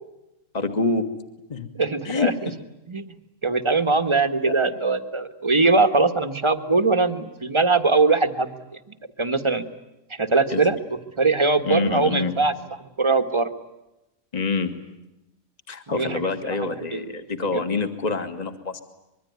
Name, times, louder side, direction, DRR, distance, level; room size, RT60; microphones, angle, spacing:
voice 1, 0.5-1.0 1.5-1.7 2.0-2.3 4.5-4.6 10.5-10.7 11.6-12.4 14.3-14.7 15.7-18.8, left 4 dB, 30° left, 7 dB, 1.8 m, -26 dB
voice 2, 1.7-2.3 2.9-3.1 3.4-8.6 9.2-9.6 10.2-10.8 11.2-12.5 13.0-13.5 15.9-16.2 16.6-17.0, right 3 dB, 25° right, 9 dB, 1.4 m, -21 dB
25.0 x 22.5 x 9.5 m, 0.93 s
omnidirectional pair, 1.3 m